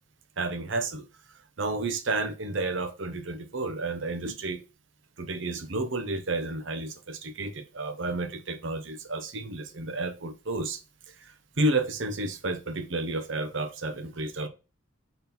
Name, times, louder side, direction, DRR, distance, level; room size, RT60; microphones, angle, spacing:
voice 1, 0.4-1.1 1.6-4.6 5.2-10.8 11.2-14.5, right 2 dB, 60° right, 0.8 m, -31 dB
4.5 x 3.8 x 5.3 m
head